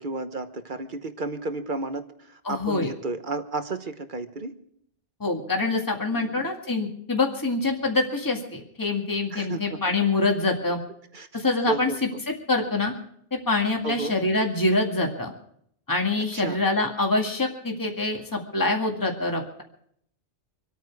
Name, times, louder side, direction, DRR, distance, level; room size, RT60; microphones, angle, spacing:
voice 1, 0.0-4.5 6.1-6.5 9.3-9.8 11.1-11.3 11.7-12.2 13.8-14.1 16.3-16.6, right 3 dB, 45° right, 9 dB, 1.1 m, -32 dB
voice 2, 2.5-2.9 5.2-10.8 11.3-11.9 12.5-12.9 13.3-15.3 15.9-19.6, left 2 dB, 15° left, 1 dB, 2.0 m, -25 dB
26.5 x 9.3 x 4.7 m, 0.68 s
omnidirectional pair, 1.2 m